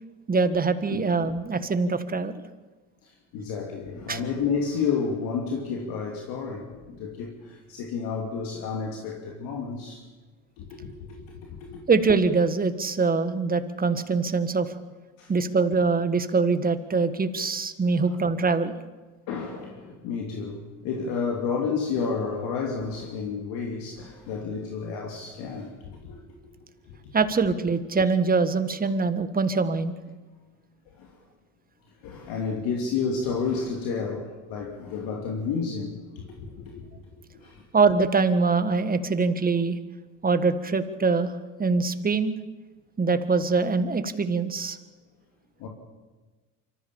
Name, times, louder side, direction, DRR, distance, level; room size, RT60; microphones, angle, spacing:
voice 1, 0.3-2.3 4.1-4.2 11.9-14.7 15.3-18.8 27.1-29.9 37.7-39.8 40.2-42.3 43.0-44.8, right 4 dB, 25° right, 1.6 m, -23 dB
voice 2, 3.0-10.0 10.6-11.8 15.2-15.3 18.0-18.1 19.3-26.2 26.9-27.1 30.9-31.1 32.0-36.9 37.3-37.6 45.6-45.7, left 5 dB, 70° left, 2.7 m, -31 dB
25.0 x 14.5 x 7.1 m
supercardioid pair, 80°, 36 cm